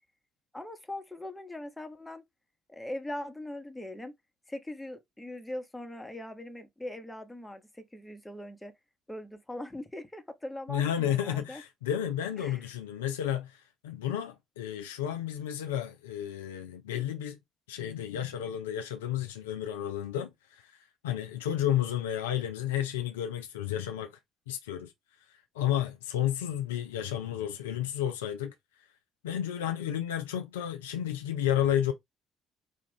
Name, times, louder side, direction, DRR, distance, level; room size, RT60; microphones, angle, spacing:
voice 1, 0.5-2.2 2.7-4.1 4.5-8.7 9.1-11.6 12.4-12.7, left 1 dB, 10° left, 1.0 m, -41 dB
voice 2, 10.7-17.4 17.7-20.7 21.0-24.2 24.5-24.9 25.5-28.5 29.2-31.9, left 10 dB, 70° left, 0.4 m, -32 dB
5.0 x 2.4 x 3.5 m
figure-of-eight pair, 50°, 0 cm